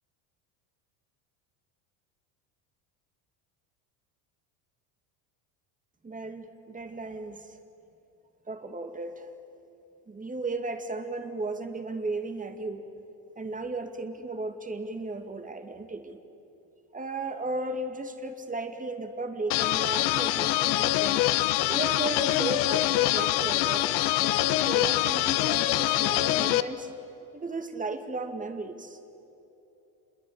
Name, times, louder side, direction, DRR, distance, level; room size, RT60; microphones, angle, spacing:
voice 1, 6.0-7.6 8.5-9.3 10.1-12.8 13.4-16.2 16.9-21.2 21.7-26.9 27.3-29.0, right 3 dB, 15° right, 7 dB, 2.3 m, -35 dB
sound 1, 19.5-26.6, left 16 dB, 70° left, 1.1 m, -25 dB
27.5 x 22.5 x 8.9 m, 2.9 s
supercardioid pair, 110°, 47 cm